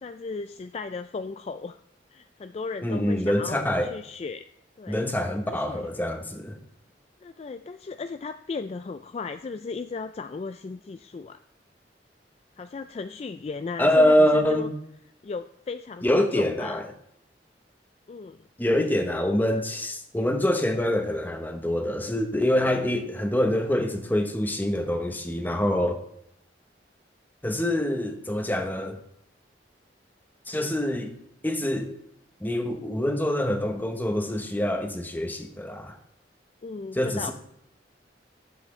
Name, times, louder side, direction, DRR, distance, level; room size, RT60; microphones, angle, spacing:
voice 1, 0.0-1.8 2.1-4.5 4.8-5.0 5.5-5.9 7.2-11.4 12.6-14.7 15.2-16.8 18.1-18.4 36.6-37.3, left 4 dB, 35° left, 0.3 m, -35 dB
voice 2, 2.8-3.9 4.9-6.6 13.8-14.7 16.0-16.9 18.6-26.0 27.4-29.0 30.5-31.1 31.4-31.9 32.4-36.0 36.9-37.3, left 1 dB, 10° left, 1.0 m, -25 dB
12.0 x 7.6 x 3.2 m
head